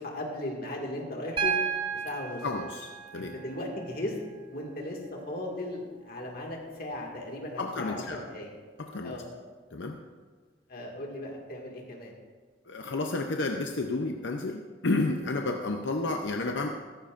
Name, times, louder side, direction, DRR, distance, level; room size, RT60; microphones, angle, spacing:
voice 1, 0.0-1.5 1.9-2.4 3.2-4.2 4.5-8.5 9.0-9.2 10.7-12.1, left 1 dB, 55° left, 0 dB, 2.1 m, -37 dB
Piano, 1.4-5.4 6.9-7.0, right 6 dB, 30° right, 0.8 m, -34 dB
voice 2, 2.4-3.3 7.6-8.2 8.8-9.2 9.7-10.0 12.7-16.7, left 2 dB, 85° left, 3 dB, 0.7 m, -31 dB
14.5 x 14.0 x 2.6 m, 1.5 s
head